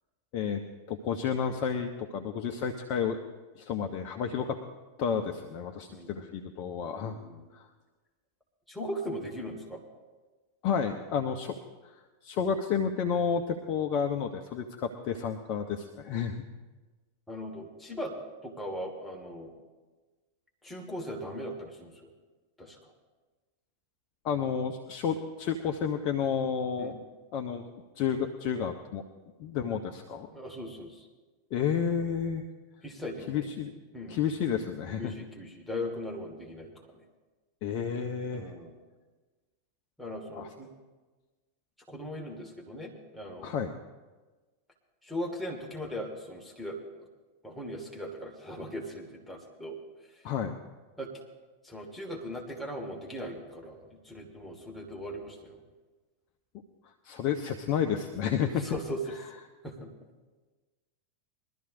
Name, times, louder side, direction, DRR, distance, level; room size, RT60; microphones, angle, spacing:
voice 1, 0.9-3.2 3.6-4.6 5.0-7.2 7.5-7.6 10.6-11.6 12.2-16.4 24.2-27.0 27.3-27.6 28.0-29.0 29.4-30.3 31.5-32.4 33.3-33.7 34.1-35.1 37.6-38.5 40.3-40.5 43.4-43.7 50.2-50.5 57.0-58.7, left 7 dB, 40° left, 5 dB, 0.8 m, -31 dB
voice 2, 5.9-6.3 7.0-7.5 8.7-9.8 17.3-18.1 18.4-19.5 20.6-22.1 22.6-22.8 26.8-26.9 30.3-31.1 32.8-33.5 33.9-34.2 35.0-37.0 38.3-38.7 40.0-40.7 41.9-43.5 45.0-47.1 47.4-49.8 51.0-51.1 51.6-55.6 58.6-59.0 59.6-59.9, equal, 5° left, -1 dB, 2.0 m, -39 dB
22.0 x 13.0 x 2.7 m, 1.3 s
figure-of-eight pair, 90°, 0 cm